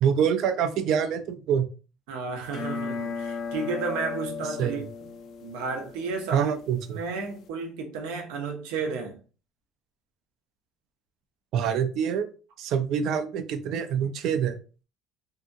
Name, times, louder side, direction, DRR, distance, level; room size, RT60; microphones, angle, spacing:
voice 1, 0.0-1.7 4.6-4.8 6.3-7.0 11.5-12.3 12.6-14.6, right 8 dB, 60° right, 9 dB, 0.5 m, -25 dB
voice 2, 2.1-4.8 5.4-6.6 6.9-9.2, right 4 dB, 90° right, 2 dB, 0.8 m, -32 dB
sound 1, 2.5-7.5, left 5 dB, 50° left, 0.4 m, -36 dB
2.7 x 2.6 x 2.5 m, 0.35 s
cardioid pair, 130°, 0 cm